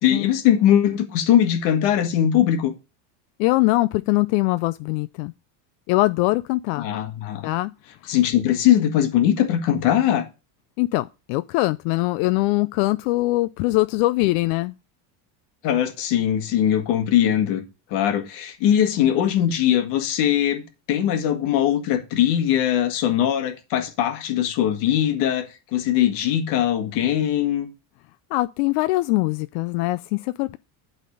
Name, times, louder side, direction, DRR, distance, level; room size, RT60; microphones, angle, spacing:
voice 1, 0.0-2.7 6.8-7.5 8.0-10.3 15.6-17.6 17.9-20.6 20.9-27.7, left 10 dB, 55° left, 1.7 m, -21 dB
voice 2, 3.4-5.3 5.9-6.9 7.4-7.7 10.8-14.7 28.3-30.6, left 20 dB, 90° left, 0.6 m, -22 dB
11.5 x 4.1 x 5.3 m
cardioid pair, 175°, 49 cm